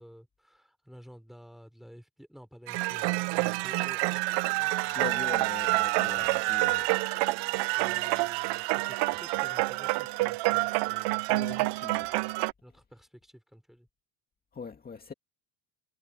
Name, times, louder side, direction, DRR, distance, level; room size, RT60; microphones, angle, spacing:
voice 1, 0.0-4.2 4.6-5.2 6.0-6.4 7.5-11.8 12.6-13.9, equal, ahead, 3.7 m, -52 dB
sound 1, 2.7-12.5, right 23 dB, 65° right, 0.7 m, -28 dB
voice 2, 4.9-6.9 11.3-12.4 14.5-15.1, left 5 dB, 20° left, 2.2 m, -41 dB
cardioid pair, 130°, 45 cm